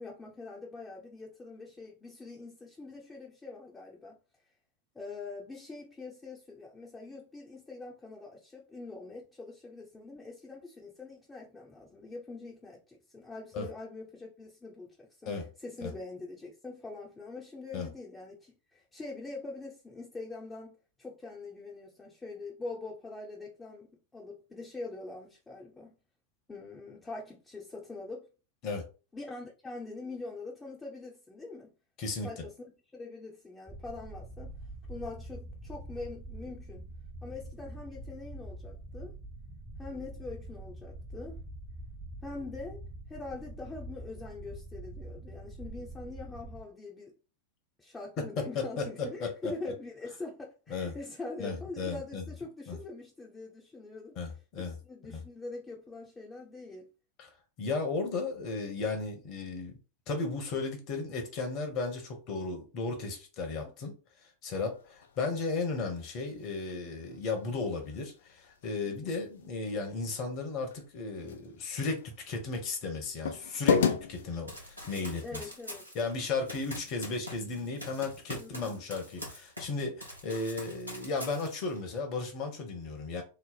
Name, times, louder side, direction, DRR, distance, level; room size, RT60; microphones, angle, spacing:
voice 1, 0.0-4.2 4.9-26.0 26.5-28.3 29.1-31.7 32.2-32.5 32.9-34.5 34.9-36.8 37.2-39.1 39.8-41.4 42.2-42.8 43.1-47.1 47.8-54.2 54.6-56.9 63.5-63.7 68.8-69.1 75.2-75.9 78.4-78.8, left 3 dB, 10° left, 0.7 m, -43 dB
voice 2, 32.0-32.3 48.4-49.5 50.7-51.0 51.4-52.2 52.7-52.8 54.2-54.8 55.1-55.2 57.2-57.3 57.6-59.8 60.1-63.9 64.4-75.4 75.9-83.2, left 3 dB, 40° left, 1.1 m, -35 dB
sound 1, 33.7-46.6, right 1 dB, 15° right, 0.8 m, -45 dB
sound 2, 64.7-75.0, left 6 dB, 60° left, 0.5 m, -36 dB
Run, 74.5-79.7 80.0-81.8, left 1 dB, 90° left, 1.0 m, -44 dB
3.2 x 2.0 x 4.1 m
figure-of-eight pair, 90°, 0 cm